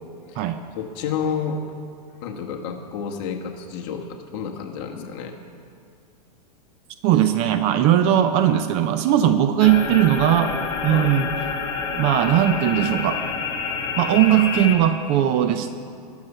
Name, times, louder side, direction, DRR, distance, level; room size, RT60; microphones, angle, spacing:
voice 1, 0.8-1.6 2.2-5.4 10.9-11.1, left 6 dB, 40° left, 2 dB, 1.4 m, -30 dB
voice 2, 7.0-10.5 10.8-11.3 11.9-13.2 14.0-15.7, right 11 dB, 30° right, 9 dB, 0.5 m, -19 dB
sound 1, 9.6-14.8, left 5 dB, 20° left, 1.3 m, -28 dB
21.0 x 7.3 x 5.5 m, 2.3 s
supercardioid pair, 155°, 21 cm